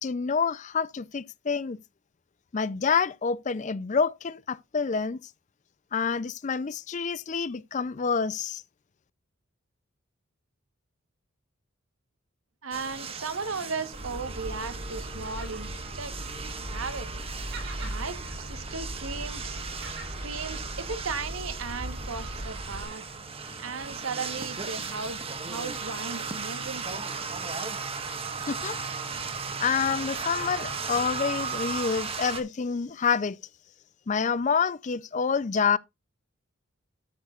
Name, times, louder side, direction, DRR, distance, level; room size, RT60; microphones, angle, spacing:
voice 1, 0.0-1.8 2.5-5.2 5.9-8.6 28.5-28.8 29.6-33.4 34.1-35.8, left 6 dB, 35° left, 0.4 m, -27 dB
voice 2, 12.6-16.3 16.7-17.1 17.8-19.6 20.0-23.0 23.6-27.0, right 4 dB, 80° right, 1.1 m, -36 dB
sound 1, 12.7-32.4, right 5 dB, 30° right, 1.2 m, -36 dB
Gull seagull, 13.9-22.8, equal, 55° right, 2.9 m, -38 dB
13.0 x 6.4 x 2.4 m
head